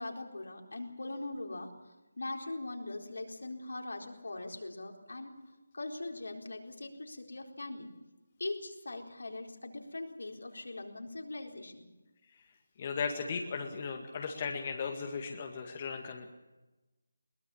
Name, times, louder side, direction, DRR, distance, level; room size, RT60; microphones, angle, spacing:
voice 1, 0.0-1.7 2.2-5.3 5.7-7.9 8.4-11.9, left 2 dB, 75° left, 1 dB, 4.2 m, -41 dB
voice 2, 12.8-16.3, left 5 dB, 35° left, 3 dB, 2.0 m, -36 dB
22.5 x 19.0 x 7.2 m, 1.1 s
figure-of-eight pair, 160°, 0 cm